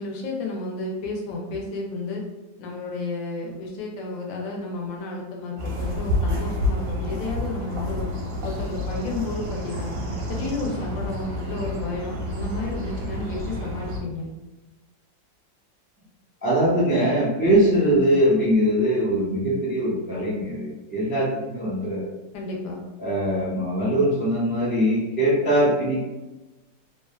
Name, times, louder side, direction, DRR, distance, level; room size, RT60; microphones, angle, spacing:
voice 1, 0.0-2.2 2.6-8.1 8.4-10.0 10.3-14.3 22.3-22.8, left 2 dB, 85° left, -1 dB, 1.4 m, -32 dB
sound 1, 5.6-14.0, left 1 dB, 70° right, 0.8 m, -29 dB
voice 2, 16.4-22.1 23.0-26.1, equal, 10° right, -9 dB, 0.5 m, -22 dB
3.2 x 2.2 x 2.2 m, 1.1 s
omnidirectional pair, 2.0 m